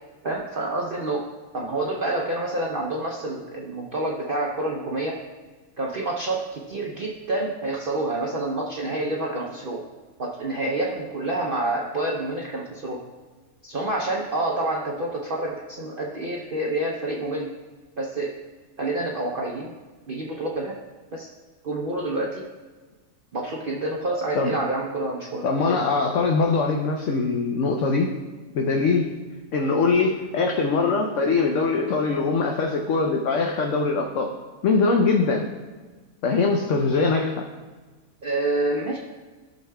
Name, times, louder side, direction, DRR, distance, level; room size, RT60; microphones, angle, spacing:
voice 1, 0.2-1.3 1.5-5.2 5.8-9.9 10.2-13.0 13.6-17.5 18.0-18.3 18.8-19.7 20.1-20.8 21.1-21.3 21.6-22.5 23.3-25.8 38.2-39.0, right 2 dB, 50° right, -2 dB, 0.7 m, -28 dB
voice 2, 25.4-28.1 28.5-29.1 29.5-34.3 34.6-35.5 36.2-37.4, left 4 dB, 65° left, 2 dB, 0.9 m, -22 dB
14.0 x 6.4 x 2.2 m, 1.3 s
omnidirectional pair, 1.5 m